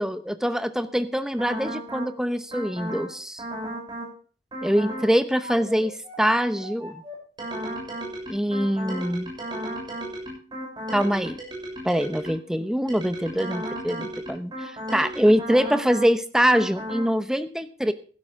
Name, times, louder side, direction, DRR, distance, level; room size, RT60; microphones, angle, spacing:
voice 1, 0.0-3.4 4.6-7.0 8.3-9.3 10.9-11.4 11.8-17.9, equal, 5° right, 11 dB, 0.8 m, -24 dB
sound 1, 1.4-2.1 2.5-3.1 3.4-4.1 4.5-5.1 5.4-12.5 12.9-16.1 16.5-17.1, right 1 dB, 25° right, 7.1 m, -35 dB
16.0 x 12.0 x 3.7 m, 0.40 s
head